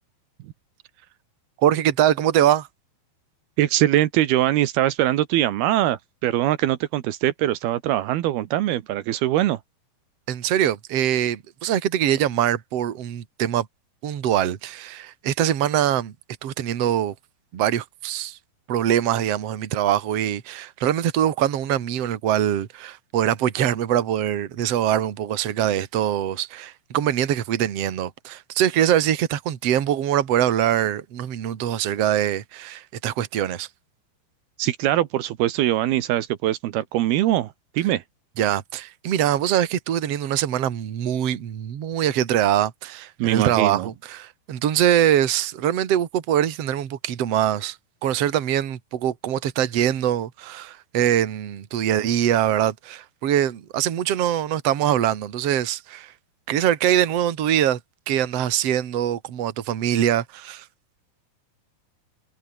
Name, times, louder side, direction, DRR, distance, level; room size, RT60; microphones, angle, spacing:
voice 1, 1.6-2.7 10.3-13.7 14.0-16.1 16.4-17.1 17.5-18.4 18.7-33.7 38.4-47.8 48.0-56.1 56.5-57.8 58.1-60.6, right 11 dB, 45° right, 2.5 m, -23 dB
voice 2, 3.6-9.6 34.6-38.0 43.2-43.9, right 13 dB, 80° right, 3.1 m, -22 dB
omnidirectional pair, 4.6 m